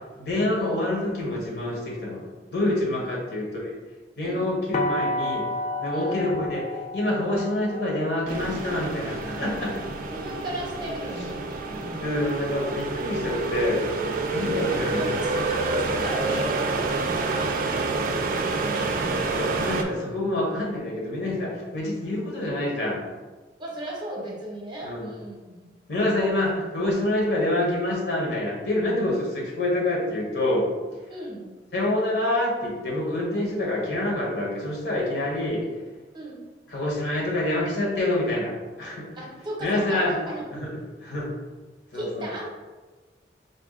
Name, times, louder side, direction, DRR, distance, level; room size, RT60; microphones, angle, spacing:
voice 1, 0.0-3.7 4.2-5.5 5.8-9.8 11.2-11.3 12.0-13.8 14.3-15.1 19.2-23.0 24.8-25.1 25.9-30.7 31.7-35.6 36.7-39.1 39.6-40.2 40.5-41.3 41.9-42.3, left 1 dB, 65° left, -2 dB, 1.1 m, -27 dB
sound 1, 4.7-10.6, left 1 dB, 40° left, 0.4 m, -32 dB
sound 2, 8.3-19.8, right 3 dB, 50° right, 0.4 m, -28 dB
voice 2, 10.1-12.0 14.5-19.3 23.6-25.6 31.1-31.5 36.1-36.4 39.2-40.4 41.1-41.2 41.9-42.5, right 1 dB, 25° right, -3 dB, 0.8 m, -35 dB
4.1 x 2.3 x 3.6 m, 1.3 s
head